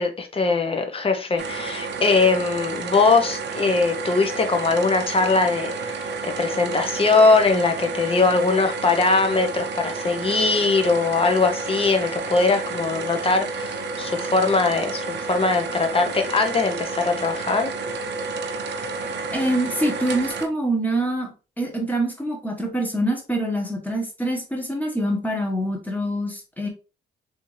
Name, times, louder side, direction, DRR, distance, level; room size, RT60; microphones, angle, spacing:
voice 1, 0.0-17.7, left 3 dB, 30° left, 5 dB, 0.8 m, -21 dB
sound 1, 1.4-20.5, right 3 dB, 60° right, 0.8 m, -30 dB
voice 2, 19.3-26.7, right 1 dB, 10° left, 1 dB, 1.3 m, -25 dB
3.4 x 2.7 x 3.1 m, 0.32 s
cardioid pair, 90°, 20 cm